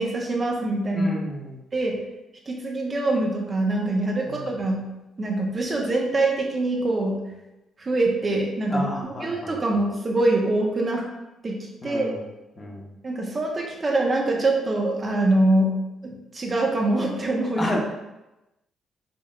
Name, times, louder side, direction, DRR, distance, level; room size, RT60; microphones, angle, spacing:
voice 1, 0.0-1.1 1.7-2.0 2.5-4.8 5.2-7.2 7.8-11.1 11.4-11.6 11.8-12.1 13.0-15.7 16.0-17.7, right 2 dB, 35° right, 0 dB, 0.8 m, -24 dB
voice 2, 0.9-1.6 4.3-4.6 8.7-9.5 11.8-12.2 12.6-12.9 17.6-17.8, left 1 dB, 30° left, -1 dB, 0.9 m, -31 dB
5.2 x 2.6 x 2.4 m, 0.97 s
cardioid pair, 90°, 0 cm